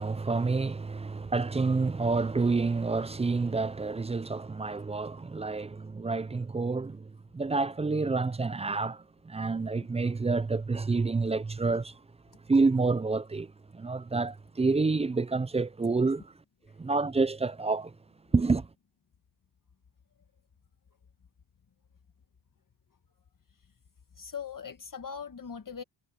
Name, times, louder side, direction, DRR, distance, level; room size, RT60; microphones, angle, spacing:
voice 1, 0.0-11.9 12.5-16.3 16.8-17.9 18.3-18.7, right 3 dB, 15° right, 0.4 m, -28 dB
voice 2, 24.2-25.8, left 6 dB, 40° left, 1.7 m, -40 dB
cardioid pair, 90°, 49 cm